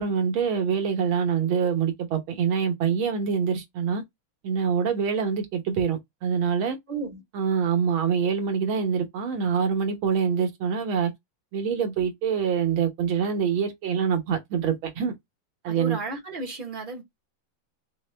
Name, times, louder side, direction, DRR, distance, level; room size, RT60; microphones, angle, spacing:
voice 1, 0.0-4.0 4.4-6.8 7.3-11.1 11.5-15.1 15.6-16.0, right 7 dB, 85° right, 1.8 m, -25 dB
voice 2, 6.9-7.2 15.7-17.0, right 3 dB, 45° right, 0.6 m, -33 dB
4.6 x 2.1 x 3.2 m
omnidirectional pair, 2.2 m